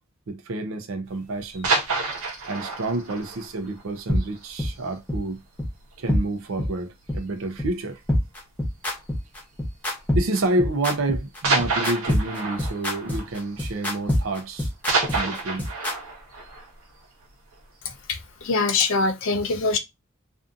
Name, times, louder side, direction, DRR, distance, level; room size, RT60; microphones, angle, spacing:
voice 1, 0.3-1.7 2.5-5.4 6.0-8.0 10.1-14.7 15.1-15.7, right 2 dB, 65° right, 0.5 m, -29 dB
sound 1, 1.4-4.9 5.3-5.4 5.8-6.0 6.3-6.4 7.2-7.6 8.8-9.1 10.0-10.1 11.4-14.2 14.5-17.6 18.1-18.2, right 3 dB, 90° right, 1.0 m, -29 dB
sound 2, 4.1-4.2 4.6-4.7 5.1-5.2 5.6-5.7 6.1-6.2 6.6-6.7 7.1-7.2 7.6-7.7 8.1-15.9, left 1 dB, 10° left, 0.8 m, -24 dB
voice 2, 18.1-19.8, left 4 dB, 60° left, 0.5 m, -23 dB
2.6 x 2.5 x 2.4 m
head